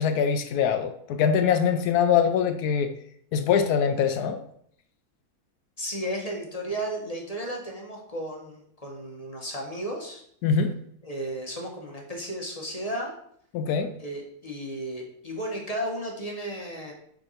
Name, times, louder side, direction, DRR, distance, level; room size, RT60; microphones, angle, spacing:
voice 1, 0.0-2.9 3.3-4.4 10.4-10.7 13.5-13.9, left 7 dB, 80° left, 8 dB, 1.1 m, -23 dB
voice 2, 5.8-10.2 11.0-13.2 14.0-16.9, right 1 dB, 25° left, 0 dB, 1.1 m, -34 dB
6.0 x 3.8 x 5.6 m, 0.67 s
omnidirectional pair, 1.7 m